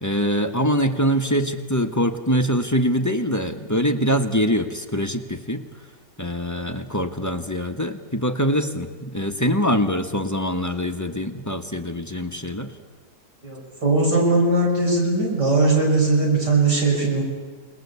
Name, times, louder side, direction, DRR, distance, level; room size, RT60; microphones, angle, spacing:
voice 1, 0.0-5.6 6.2-12.7, equal, 10° left, 5 dB, 1.0 m, -23 dB
voice 2, 13.4-17.2, right 2 dB, 80° right, -1 dB, 6.2 m, -19 dB
29.0 x 19.5 x 8.3 m, 1.5 s
omnidirectional pair, 1.8 m